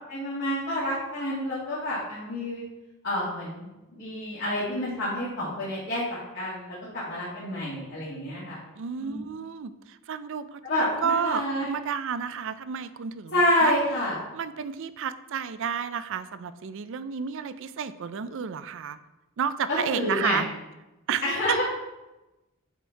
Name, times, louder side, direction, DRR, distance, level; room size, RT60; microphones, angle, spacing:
voice 1, 0.1-2.7 3.0-8.6 9.0-9.2 10.6-11.7 13.3-14.2 19.7-20.4 21.2-21.6, left 1 dB, 50° left, -9 dB, 2.0 m, -28 dB
voice 2, 8.8-13.7 14.3-19.0 19.4-20.5 21.1-21.2 21.5-21.6, right 7 dB, 60° right, 13 dB, 0.4 m, -31 dB
8.1 x 4.4 x 4.6 m, 1.0 s
head